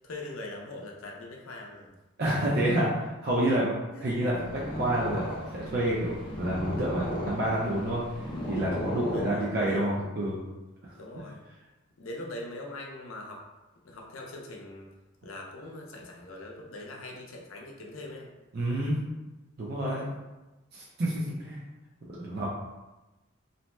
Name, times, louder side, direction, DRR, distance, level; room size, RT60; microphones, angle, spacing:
voice 1, 0.0-1.9 3.9-4.0 9.1-9.9 11.0-11.4 12.0-13.4 13.8-14.9 15.2-18.3 19.8-20.2, left 1 dB, 80° left, 0 dB, 0.5 m, -42 dB
voice 2, 2.2-5.3 5.5-8.0 8.5-10.4 10.8-11.2 18.5-19.0 19.6-20.0 20.7-21.6 22.1-22.5, right 1 dB, 50° right, -6 dB, 0.5 m, -29 dB
Purr, 4.1-9.8, equal, 25° left, 0.4 m, -35 dB
2.6 x 2.1 x 3.0 m, 1.1 s
head